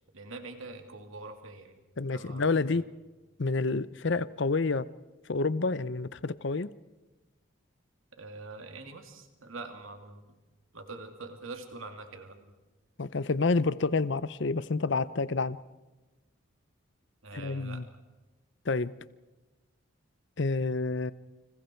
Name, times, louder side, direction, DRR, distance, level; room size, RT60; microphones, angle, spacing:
voice 1, 0.1-1.8 2.1-2.8 8.2-10.2 10.7-12.5 17.2-17.8, right 3 dB, 75° right, 2.7 m, -44 dB
voice 2, 2.0-2.8 3.4-4.9 5.3-6.7 13.0-15.6 17.3-17.8 18.7-18.9 20.4-21.1, left 3 dB, 55° left, 0.7 m, -28 dB
29.5 x 26.5 x 4.5 m
head